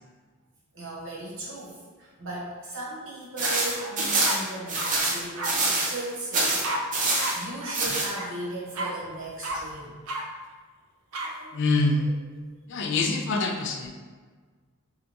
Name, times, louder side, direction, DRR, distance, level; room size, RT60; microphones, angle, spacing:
voice 1, 0.7-6.8 7.3-10.0 11.2-11.6 12.0-12.1, right 1 dB, 65° right, -5 dB, 0.9 m, -37 dB
sound 1, 3.4-6.0 6.3-7.4 7.7-8.1, right 2 dB, 40° right, 0.5 m, -25 dB
sound 2, 3.7-3.9 4.2-4.9 5.4-5.5 6.6-6.8 7.2-7.3 7.6-7.7 8.1-8.3 8.7-8.9 9.4-9.6 10.1-10.2 11.1-11.3, right 1 dB, 90° right, 0.5 m, -32 dB
voice 2, 11.5-12.2 12.7-13.9, left 3 dB, 60° left, 3 dB, 0.4 m, -25 dB
3.4 x 2.8 x 2.5 m, 1.5 s
head